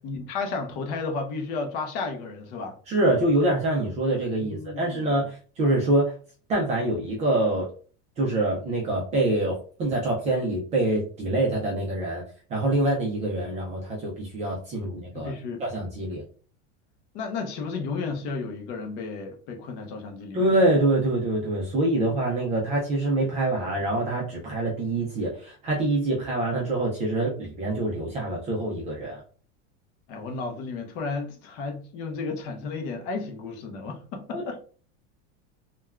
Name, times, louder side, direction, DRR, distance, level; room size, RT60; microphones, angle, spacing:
voice 1, 0.0-2.8 4.4-5.1 15.1-15.6 17.1-20.5 30.1-34.6, left 4 dB, 40° left, 0.6 m, -33 dB
voice 2, 2.9-6.1 6.5-7.7 8.2-12.2 12.5-15.3 15.6-16.2 20.3-29.2 34.3-34.4, right 2 dB, 20° right, 0.3 m, -25 dB
3.3 x 2.2 x 2.2 m
supercardioid pair, 165°, 35 cm